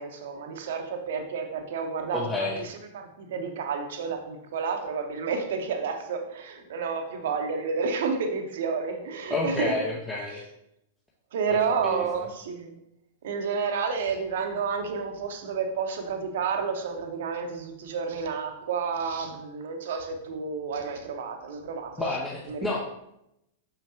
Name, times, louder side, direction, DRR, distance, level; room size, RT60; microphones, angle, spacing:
voice 1, 0.0-9.7 11.3-12.7 13.2-22.1 22.5-22.6, right 5 dB, 60° right, 5 dB, 0.9 m, -30 dB
voice 2, 2.1-2.6 9.3-10.4 11.5-12.2 22.0-22.8, left 2 dB, 10° left, -4 dB, 0.9 m, -30 dB
6.3 x 5.8 x 2.8 m, 0.82 s
figure-of-eight pair, 100°, 0 cm